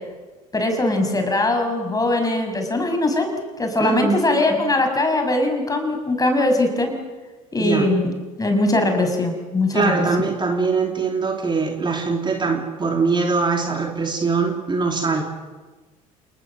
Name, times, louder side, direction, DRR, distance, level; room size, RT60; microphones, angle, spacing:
voice 1, 0.5-3.3 3.6-6.9 7.5-10.1, left 2 dB, 20° left, 5 dB, 6.7 m, -21 dB
voice 2, 3.8-4.2 7.6-7.9 9.7-15.2, right 4 dB, 25° right, 3 dB, 3.3 m, -22 dB
29.0 x 20.0 x 7.7 m, 1.3 s
hypercardioid pair, 65°, 18 cm